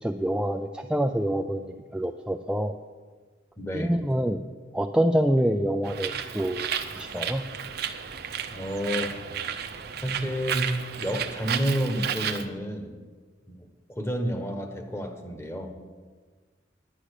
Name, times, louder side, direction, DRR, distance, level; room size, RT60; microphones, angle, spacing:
voice 1, 0.0-2.7 3.7-4.4 4.7-6.7 7.0-7.4, equal, 5° right, 5 dB, 0.4 m, -26 dB
voice 2, 3.6-4.0 8.5-9.1 10.0-12.9 13.5-15.7, equal, 15° left, 4 dB, 1.3 m, -30 dB
Bird, 5.8-12.4, right 8 dB, 60° right, 0.8 m, -33 dB
10.0 x 10.0 x 6.5 m, 1.5 s
head